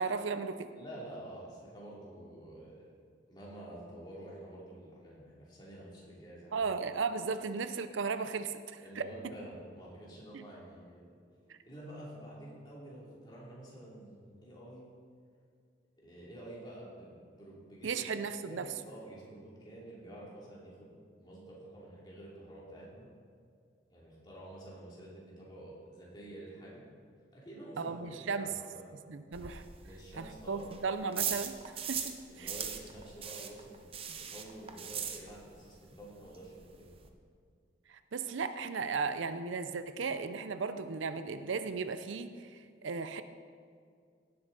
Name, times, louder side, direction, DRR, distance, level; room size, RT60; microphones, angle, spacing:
voice 1, 0.0-0.7 6.5-9.1 10.3-10.4 11.5-11.6 17.8-18.7 27.8-28.5 29.1-29.6 30.2-31.5 31.9-32.5 37.9-43.2, right 5 dB, 85° right, 11 dB, 0.6 m, -36 dB
voice 2, 0.7-2.9 3.3-6.7 7.3-7.5 8.8-11.2 11.6-14.9 16.0-17.9 18.4-23.1 23.9-26.8 27.3-28.8 29.8-30.7 32.3-36.9, right 1 dB, 25° left, -5 dB, 2.8 m, -49 dB
sound 1, 29.3-32.2 32.4-35.7 35.9-36.0 36.3-36.4 36.6-37.1, right 8 dB, 30° right, 0.7 m, -39 dB
16.5 x 7.7 x 4.0 m, 2.2 s
head